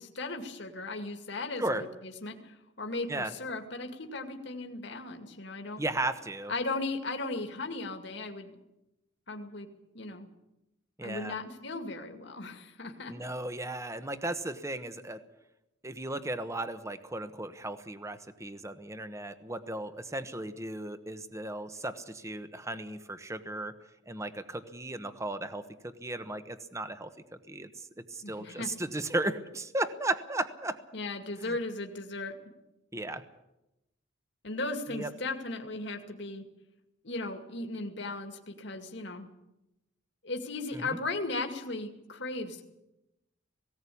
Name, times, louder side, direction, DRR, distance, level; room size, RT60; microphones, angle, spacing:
voice 1, 0.0-5.8 6.5-8.6 9.3-9.7 9.9-10.3 11.0-13.1 28.2-28.7 30.9-32.3 34.4-36.4 37.0-39.3 40.2-42.6, left 2 dB, 60° left, 5 dB, 2.2 m, -37 dB
voice 2, 5.8-6.5 11.0-11.4 13.1-15.2 15.8-23.7 24.1-27.1 27.5-30.8 31.4-31.5 32.9-33.2 34.9-35.1 40.7-41.0, right 2 dB, 15° right, 10 dB, 1.1 m, -35 dB
18.5 x 17.0 x 8.5 m, 0.93 s
head